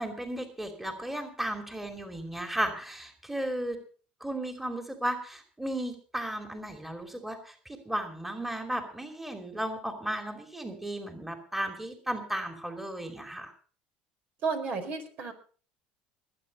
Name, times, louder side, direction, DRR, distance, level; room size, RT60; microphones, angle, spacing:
voice 1, 0.0-3.8 4.2-13.5, right 1 dB, 5° right, 5 dB, 2.8 m, -35 dB
voice 2, 14.4-15.3, right 4 dB, 55° right, 6 dB, 4.7 m, -32 dB
20.0 x 9.1 x 5.3 m, 0.42 s
supercardioid pair, 100°, 3 cm